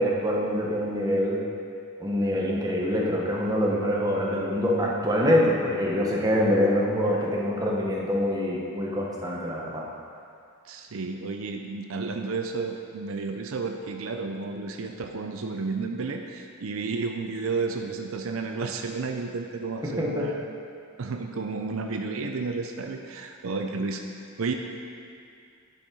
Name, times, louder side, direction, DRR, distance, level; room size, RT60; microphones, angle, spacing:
voice 1, 0.0-1.4 2.0-9.8 19.8-20.3, equal, 20° right, -3 dB, 1.1 m, -25 dB
voice 2, 10.7-20.4 21.0-24.0 24.4-24.5, right 4 dB, 75° right, 4 dB, 0.6 m, -32 dB
11.0 x 5.8 x 4.7 m, 2.4 s
head